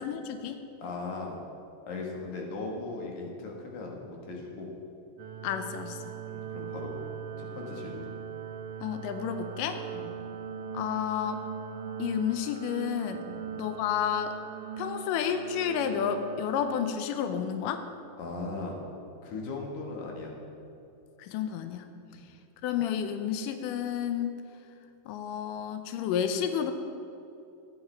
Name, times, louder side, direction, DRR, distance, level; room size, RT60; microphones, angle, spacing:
voice 1, 0.0-0.6 5.4-6.2 8.8-9.8 10.7-11.4 12.0-13.3 13.6-14.3 14.8-17.8 21.2-21.9 22.6-24.4 25.1-26.7, left 8 dB, 90° left, 8 dB, 1.9 m, -31 dB
voice 2, 0.8-1.4 1.9-4.7 6.3-7.0 7.4-8.1 9.9-10.1 13.3-13.5 18.2-18.8 19.2-20.3 22.1-22.2, left 3 dB, 60° left, 0 dB, 2.5 m, -38 dB
sound 1, 5.2-16.9, right 6 dB, 85° right, 1.7 m, -40 dB
14.5 x 10.0 x 3.4 m, 2.7 s
omnidirectional pair, 4.4 m